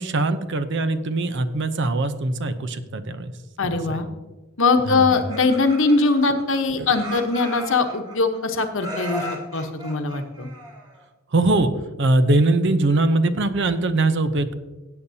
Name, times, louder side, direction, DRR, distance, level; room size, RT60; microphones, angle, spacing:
voice 1, 0.0-3.3 3.9-4.0 4.9-5.1 11.3-11.7 12.0-14.5, right 2 dB, 60° right, 11 dB, 0.7 m, -21 dB
voice 2, 3.6-4.1 4.6-9.3 9.5-10.5, left 3 dB, 70° left, 6 dB, 1.0 m, -21 dB
Laughter, 4.9-6.6 6.9-8.4 8.8-11.0, equal, 20° right, 1.9 m, -36 dB
16.5 x 8.6 x 2.8 m, 1.2 s
head